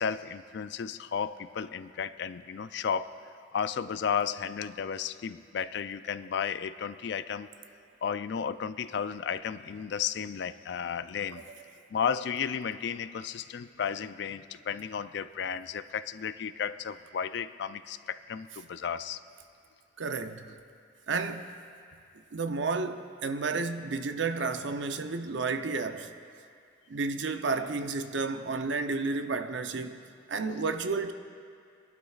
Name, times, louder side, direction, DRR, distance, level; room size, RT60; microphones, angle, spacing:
voice 1, 0.0-3.2 3.5-7.5 8.0-11.4 11.9-19.2, left 7 dB, 65° left, 0.4 m, -33 dB
voice 2, 20.0-20.5 21.1-21.5 22.3-26.1 26.9-30.0 30.3-31.1, right 4 dB, 75° right, 0.6 m, -31 dB
23.5 x 12.0 x 2.4 m
head